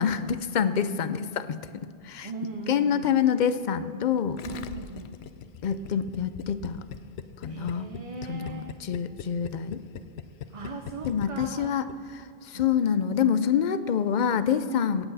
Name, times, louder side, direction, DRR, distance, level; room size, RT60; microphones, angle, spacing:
voice 1, 0.0-1.6 2.0-2.3 2.7-4.4 5.6-6.8 7.4-7.9 8.3-9.8 11.1-11.8 12.1-15.1, left 8 dB, 55° left, 13 dB, 0.6 m, -26 dB
voice 2, 2.2-3.1 4.4-5.2 7.5-8.8 10.5-11.8 12.5-12.7 14.7-14.9, right 3 dB, 40° right, 4 dB, 0.6 m, -39 dB
Gurgling, 4.4-12.2, left 9 dB, 80° left, 0.8 m, -40 dB
17.0 x 8.0 x 4.1 m, 2.4 s
omnidirectional pair, 1.1 m